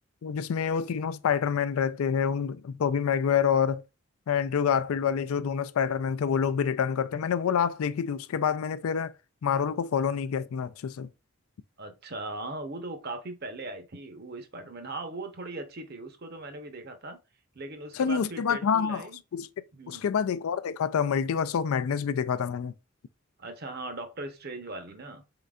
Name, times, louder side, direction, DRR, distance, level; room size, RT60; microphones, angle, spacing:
voice 1, 0.2-3.8 4.3-9.1 9.4-11.1 17.9-19.5 19.9-22.7, left 7 dB, 80° left, 0.4 m, -27 dB
voice 2, 11.8-17.2 17.5-19.2 19.7-20.1 23.4-25.2, right 2 dB, 50° right, 0.8 m, -39 dB
4.2 x 3.8 x 2.3 m
head